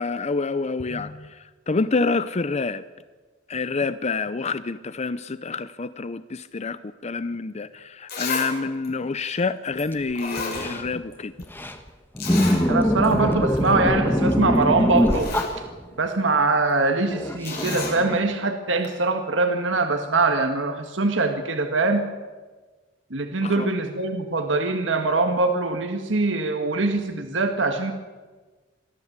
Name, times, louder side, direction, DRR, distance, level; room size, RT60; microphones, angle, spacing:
voice 1, 0.0-2.8 3.5-11.3 23.4-23.7, left 4 dB, 35° left, 0.6 m, -27 dB
Zipper (clothing), 7.6-7.7 8.1-8.5 8.8-8.9 9.8-9.9 10.2-11.1 11.4-11.5 12.2-12.6 13.0-13.1 13.5-13.7 14.6-14.7 15.0-15.5 17.4-18.0 18.8-18.9, left 4 dB, 55° left, 5.9 m, -31 dB
sound 1, 10.1-10.2 10.4-10.9 11.4-11.9 12.2-16.0 17.1-18.2, equal, 10° left, 1.4 m, -23 dB
voice 2, 12.7-15.3 16.0-22.0 23.1-27.9, right 3 dB, 75° right, 1.7 m, -23 dB
23.5 x 14.0 x 8.2 m
head